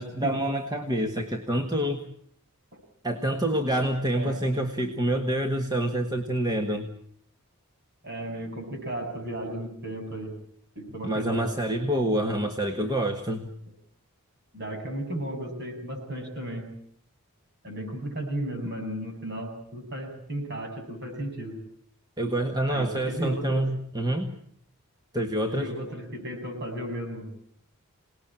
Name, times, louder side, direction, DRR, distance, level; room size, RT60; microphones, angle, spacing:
voice 1, 0.0-2.0 3.0-6.9 11.0-13.5 22.2-24.3 25.1-25.7, right 1 dB, 20° right, 4 dB, 1.6 m, -27 dB
voice 2, 8.0-10.3 10.8-11.5 14.5-16.7 17.6-21.6 22.7-23.6 25.5-27.3, right 1 dB, 50° right, 3 dB, 7.7 m, -34 dB
27.5 x 19.5 x 8.9 m, 0.64 s
head